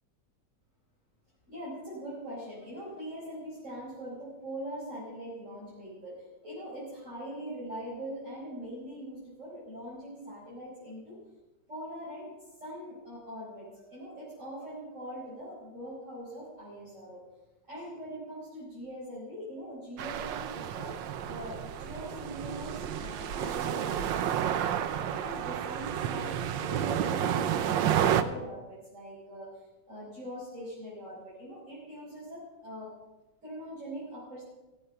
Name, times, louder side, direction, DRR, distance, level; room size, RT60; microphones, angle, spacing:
voice 1, 1.5-11.2 11.7-12.3 12.6-17.2 17.7-20.9 21.2-24.6 24.9-32.9 33.4-34.4, equal, 40° right, -8 dB, 5.0 m, -42 dB
sound 1, 20.0-28.2, right 9 dB, 90° right, 1.5 m, -31 dB
16.5 x 7.9 x 6.7 m, 1.1 s
omnidirectional pair, 1.9 m